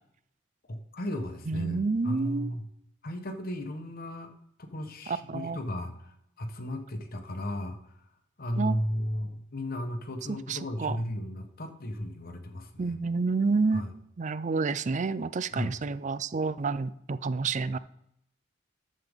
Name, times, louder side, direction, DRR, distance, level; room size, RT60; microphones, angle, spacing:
voice 1, 0.7-2.7 3.0-4.3 4.6-8.0 8.4-13.0 13.7-13.9 15.5-15.8, equal, 45° left, 1.0 m, -35 dB
voice 2, 1.5-2.5 5.1-5.6 8.6-8.8 10.5-11.0 12.8-13.9 14.2-17.8, right 4 dB, 35° right, 0.4 m, -29 dB
11.5 x 7.6 x 3.6 m
head